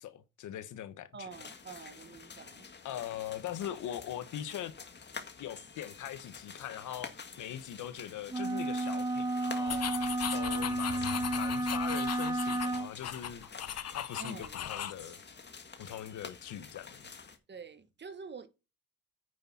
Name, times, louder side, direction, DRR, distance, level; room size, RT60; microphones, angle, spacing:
voice 1, 0.0-1.3 2.8-4.7 5.4-13.5 13.9-15.2 15.8-17.0, left 11 dB, 80° left, 1.3 m, -41 dB
voice 2, 1.1-2.7 14.2-14.6 17.5-18.5, right 5 dB, 35° right, 1.5 m, -47 dB
sound 1, 1.3-17.4, left 5 dB, 35° left, 1.8 m, -49 dB
sound 2, 8.3-12.9, right 1 dB, 10° right, 0.9 m, -32 dB
sound 3, 9.7-15.0, left 10 dB, 55° left, 1.0 m, -38 dB
9.5 x 6.6 x 4.3 m
cardioid pair, 90°, 30 cm